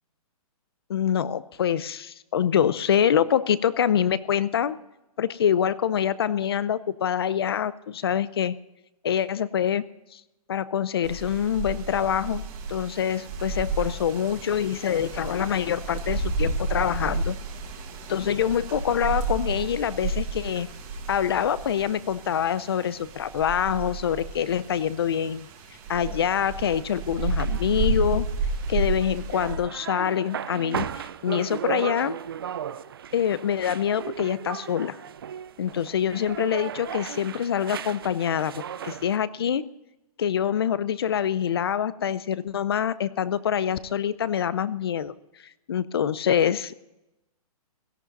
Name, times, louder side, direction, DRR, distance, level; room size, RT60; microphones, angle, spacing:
voice 1, 0.9-4.8 5.2-8.6 9.0-9.8 10.1-10.2 10.5-12.4 12.7-17.4 18.1-20.7 21.1-25.5 25.9-28.3 28.7-32.2 33.1-35.0 35.6-38.5 38.8-39.6 40.2-45.1 45.7-46.8, left 9 dB, 40° left, 18 dB, 0.6 m, -25 dB
sound 1, 11.0-29.5, right 3 dB, 15° right, 1.8 m, -31 dB
sound 2, 25.9-39.2, right 9 dB, 40° right, 0.5 m, -37 dB
17.0 x 13.5 x 4.0 m, 0.96 s
hypercardioid pair, 175°, 19 cm